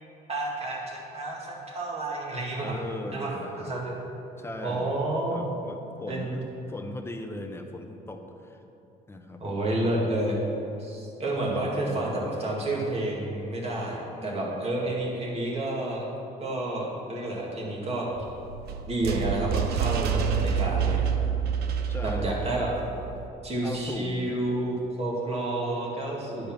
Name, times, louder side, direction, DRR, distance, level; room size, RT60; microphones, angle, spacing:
voice 1, 0.3-2.7 3.1-3.3 3.6-3.9 4.6-5.5 6.1-6.4 9.4-10.4 10.8-16.1 16.4-18.1 18.9-21.0 22.0-22.7 23.4-26.5, right 1 dB, 35° right, -3 dB, 2.1 m, -30 dB
voice 2, 2.6-3.8 4.4-5.0 5.3-8.6 9.1-9.4 11.2-12.2 14.2-14.6 21.9-22.4 23.6-24.4, left 2 dB, 15° left, 5 dB, 0.8 m, -39 dB
sound 1, 18.1-23.3, right 7 dB, 70° right, 0.7 m, -28 dB
10.5 x 5.2 x 5.9 m, 2.9 s
cardioid pair, 110°, 17 cm